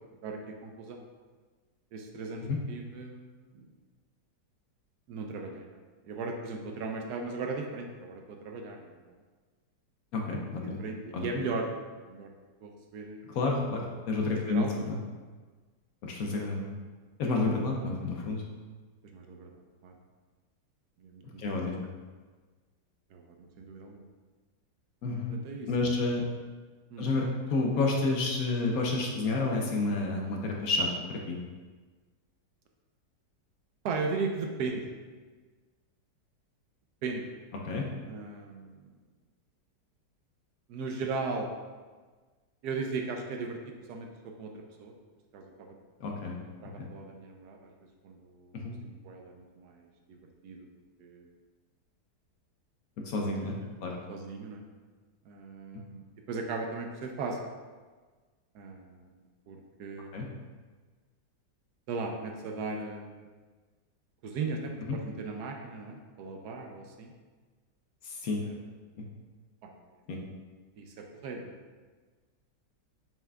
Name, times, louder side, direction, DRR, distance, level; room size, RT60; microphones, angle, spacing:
voice 1, 0.2-1.0 1.9-3.7 5.1-5.8 6.1-9.0 10.3-10.5 10.8-11.8 12.0-12.3 12.6-13.2 14.2-14.9 19.0-19.9 21.0-21.6 23.1-24.0 25.3-25.7 26.9-27.1 33.8-34.9 37.0-37.3 38.0-38.8 40.7-41.5 42.6-44.9 45.3-45.8 46.6-47.7 48.0-48.6 48.8-50.2 50.4-50.7 51.0-51.3 53.1-53.6 54.1-54.6 55.3-57.4 58.5-59.1 59.5-60.4 61.9-63.3 64.2-67.1 68.4-68.6 69.6-69.7 70.8-71.5, right 4 dB, 75° right, 3 dB, 1.1 m, -37 dB
voice 2, 10.1-10.8 11.1-11.3 13.3-15.0 16.0-16.7 17.2-18.4 21.4-21.8 25.0-25.3 25.7-26.2 27.0-31.4 37.6-37.9 46.0-46.4 46.8-46.9 48.5-48.7 53.0-54.0 60.1-60.3 64.9-65.0 68.0-68.4 69.0-69.1 70.1-70.2, left 3 dB, 65° left, 0 dB, 1.0 m, -30 dB
7.4 x 5.6 x 2.3 m, 1.4 s
omnidirectional pair, 1.9 m